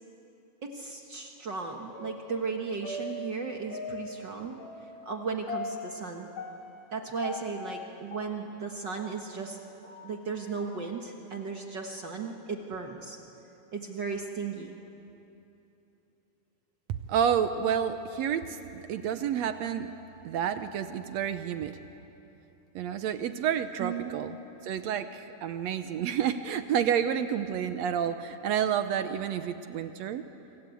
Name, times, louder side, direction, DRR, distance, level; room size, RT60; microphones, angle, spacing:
voice 1, 0.6-4.6 5.0-6.3 6.9-9.6 10.0-13.2 13.7-14.8 23.8-24.2, right 5 dB, 50° right, 3 dB, 1.4 m, -35 dB
sound 1, 1.9-9.2 9.6-11.0 11.4-11.5, left 3 dB, 60° left, 3.5 m, -41 dB
voice 2, 16.9-19.9 20.2-21.8 22.7-24.4 24.6-30.2, right 8 dB, 75° right, 10 dB, 1.7 m, -29 dB
26.0 x 25.5 x 8.5 m, 3.0 s
omnidirectional pair, 3.8 m